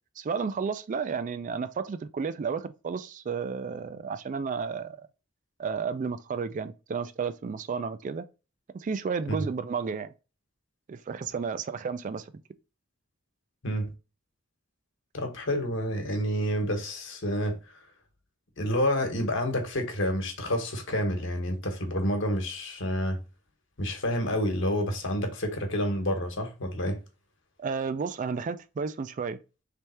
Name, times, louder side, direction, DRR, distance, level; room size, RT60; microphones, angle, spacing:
voice 1, 0.2-5.1 5.6-8.3 8.7-10.1 10.9-12.3 27.6-29.4, right 5 dB, 40° right, 0.3 m, -32 dB
voice 2, 15.1-17.6 18.6-23.2 23.8-27.0, equal, 60° left, 1.2 m, -29 dB
3.4 x 3.2 x 4.3 m
head